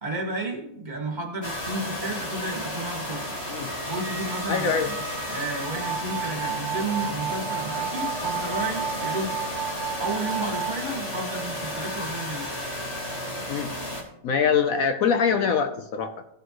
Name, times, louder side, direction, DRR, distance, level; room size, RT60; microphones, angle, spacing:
voice 1, 0.0-3.2 3.8-5.0 5.3-9.4 10.0-12.5, right 2 dB, 30° right, 0 dB, 2.1 m, -32 dB
sound 1, 1.4-14.0, equal, 40° left, 2.2 m, -33 dB
voice 2, 4.5-4.9 13.5-13.7 14.2-16.4, left 6 dB, 65° left, 7 dB, 1.1 m, -24 dB
sound 2, 5.8-10.8, right 8 dB, 70° right, 1.1 m, -32 dB
17.0 x 6.8 x 3.1 m, 0.82 s
omnidirectional pair, 1.7 m